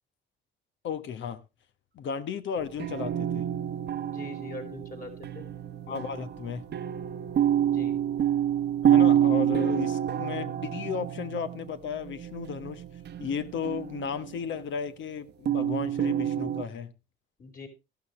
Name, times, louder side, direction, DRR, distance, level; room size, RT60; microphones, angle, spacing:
voice 1, 0.8-1.4 2.0-3.4 5.9-6.6 8.8-12.8 13.2-16.9, left 7 dB, 70° left, 11 dB, 1.1 m, -34 dB
sound 1, 2.6-14.4 15.5-16.6, right 10 dB, 60° right, 0.9 m, -28 dB
voice 2, 4.0-5.4 7.6-8.0 17.4-17.7, left 2 dB, 45° left, 2 dB, 4.9 m, -43 dB
13.5 x 12.0 x 3.1 m, 0.26 s
cardioid pair, 90°, 20 cm